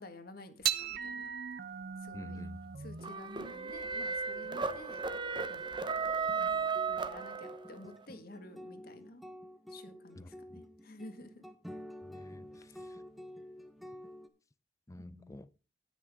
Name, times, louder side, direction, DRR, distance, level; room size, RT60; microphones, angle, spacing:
voice 1, 0.0-1.3 2.0-2.5 2.8-5.0 5.5-6.0 6.4-9.2 9.7-11.4 15.0-15.4, left 2 dB, 55° left, 1.6 m, -52 dB
sound 1, 0.6-7.2, right 9 dB, 55° right, 0.7 m, -41 dB
voice 2, 2.1-2.8 10.2-10.3 12.0-13.0 14.9-15.5, left 1 dB, 20° left, 0.5 m, -49 dB
sound 2, 3.0-7.8, right 5 dB, 25° right, 0.9 m, -35 dB
sound 3, 4.4-14.3, left 1 dB, ahead, 1.0 m, -50 dB
18.0 x 6.2 x 3.6 m
head